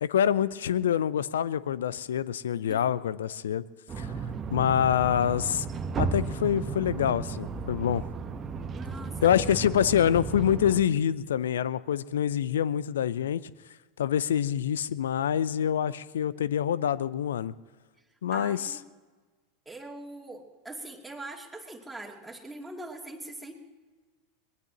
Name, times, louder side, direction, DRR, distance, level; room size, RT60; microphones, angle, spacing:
voice 1, 0.0-3.6 4.0-4.1 4.5-5.7 6.0-8.0 9.2-13.5 14.0-17.5 18.2-18.7, left 9 dB, 75° left, 19 dB, 0.5 m, -26 dB
Skyrise Apartment with open windows - Atmos, 3.9-10.8, right 4 dB, 30° right, 1.2 m, -34 dB
voice 2, 8.7-9.6 18.3-18.8 19.7-23.5, right 2 dB, 5° right, -2 dB, 2.7 m, -42 dB
22.5 x 20.0 x 3.0 m, 1.3 s
figure-of-eight pair, 85°, 0 cm